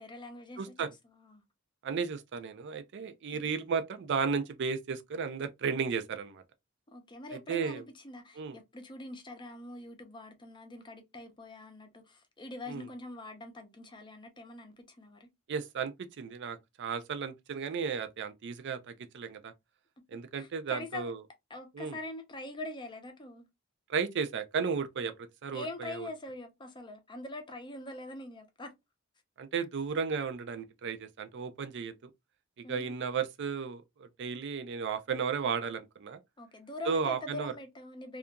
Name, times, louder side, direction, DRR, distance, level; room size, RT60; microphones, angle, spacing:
voice 1, 0.0-0.7 1.0-1.4 3.3-3.4 6.9-15.3 20.1-21.1 21.5-23.4 25.5-28.7 32.6-32.9 36.4-38.2, left 2 dB, 25° left, 0.6 m, -44 dB
voice 2, 0.6-0.9 1.8-6.4 7.5-7.8 8.4-8.6 12.7-12.9 15.5-19.5 20.1-21.2 21.7-22.0 23.9-26.1 29.4-32.1 32.7-36.2 36.9-37.5, right 6 dB, 60° right, 0.4 m, -34 dB
2.7 x 2.4 x 2.2 m
head